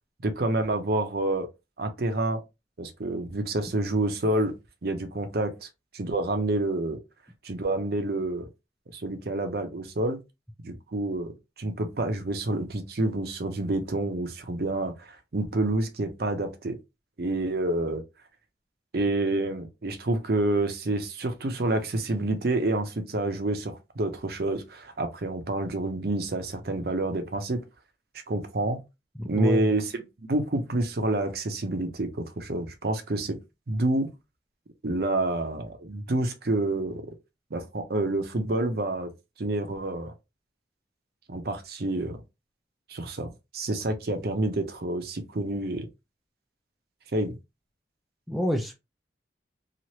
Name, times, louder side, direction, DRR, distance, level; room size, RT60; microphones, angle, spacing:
voice 1, 0.2-1.5 1.8-2.4 2.8-4.5 4.8-5.7 5.9-7.0 7.4-8.5 8.9-10.2 10.6-11.3 11.6-16.8 17.2-18.0 18.9-27.6 28.3-28.8 29.3-29.9 30.3-33.4 33.7-34.1 34.8-37.1 37.5-39.1 39.4-40.1 41.3-42.2 42.9-45.9 47.1-47.4, right 2 dB, 55° right, 0.6 m, -28 dB
voice 2, 29.2-29.7 48.3-48.7, equal, ahead, 0.3 m, -27 dB
3.0 x 2.4 x 2.8 m
head